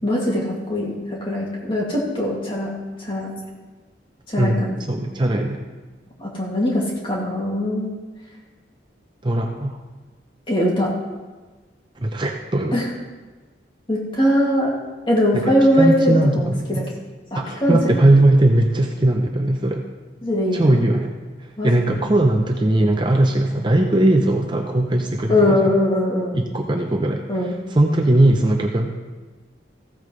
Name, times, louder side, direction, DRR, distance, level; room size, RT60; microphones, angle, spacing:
voice 1, 0.0-2.7 3.0-3.3 4.3-4.8 6.2-7.9 10.5-10.9 12.7-12.9 13.9-14.7 15.1-16.8 17.3-18.0 20.2-20.7 21.6-22.0 25.3-26.4 27.3-27.5, left 1 dB, 25° left, -4 dB, 2.4 m, -21 dB
voice 2, 4.9-5.6 9.2-9.8 12.0-12.8 15.3-16.9 17.3-19.8 20.5-21.1 21.4-25.8 26.3-28.9, right 1 dB, 25° right, 2 dB, 0.7 m, -19 dB
15.0 x 8.7 x 3.3 m, 1.3 s
head